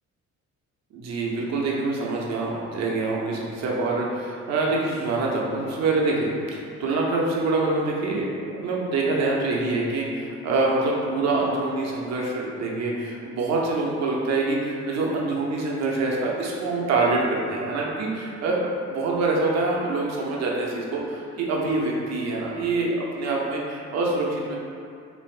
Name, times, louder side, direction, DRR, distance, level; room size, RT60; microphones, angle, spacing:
voice 1, 0.9-24.6, right 3 dB, 60° right, -3 dB, 0.6 m, -25 dB
3.3 x 2.5 x 2.4 m, 2.3 s
cardioid pair, 90°, 30 cm